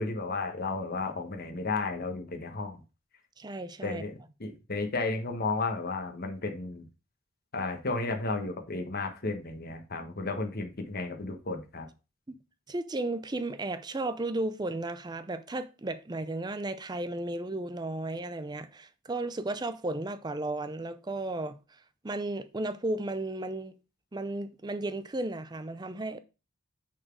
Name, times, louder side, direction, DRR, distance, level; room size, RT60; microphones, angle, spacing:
voice 1, 0.0-2.8 3.8-6.8 7.5-11.9, left 3 dB, 45° left, 1.2 m, -33 dB
voice 2, 3.4-4.0 12.3-12.4 12.7-21.6 22.0-23.8 24.1-26.2, right 2 dB, 20° right, 0.5 m, -34 dB
6.3 x 4.2 x 4.6 m
head